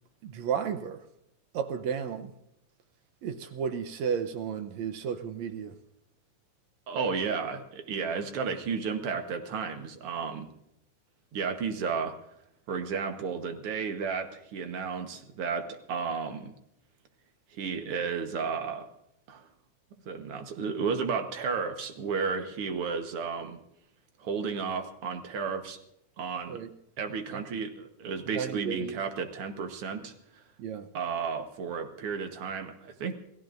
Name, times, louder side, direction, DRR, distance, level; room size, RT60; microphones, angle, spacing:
voice 1, 0.2-1.0 1.5-2.3 3.2-5.8 26.5-26.7 27.3-27.4 28.3-29.0 30.6-30.9, right 7 dB, 75° right, 8 dB, 2.0 m, -33 dB
voice 2, 6.9-10.5 11.3-12.2 12.7-16.5 17.5-18.9 19.3-19.5 20.1-23.6 24.2-25.8 26.2-26.6 27.0-30.1 30.9-33.1, right 5 dB, 55° right, 6 dB, 1.8 m, -33 dB
29.0 x 16.0 x 2.6 m, 0.80 s
omnidirectional pair, 3.5 m